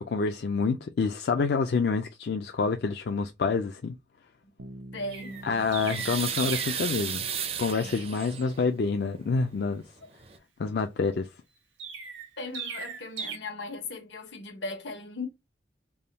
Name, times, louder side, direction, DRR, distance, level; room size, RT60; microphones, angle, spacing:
voice 1, 0.1-4.0 5.4-7.3 7.6-9.8 10.6-11.3, left 4 dB, 60° left, 0.4 m, -27 dB
Bass guitar, 4.6-8.3, right 1 dB, 70° right, 0.7 m, -49 dB
voice 2, 4.9-5.5 7.8-7.9 12.4-15.3, left 2 dB, 80° left, 1.0 m, -38 dB
Chirp tweet, 5.1-6.9 11.8-13.4, right 6 dB, 90° right, 1.2 m, -38 dB
sound 1, 5.3-8.6 9.8-9.9 10.2-10.4, right 8 dB, 30° right, 0.4 m, -34 dB
3.4 x 2.2 x 4.0 m
head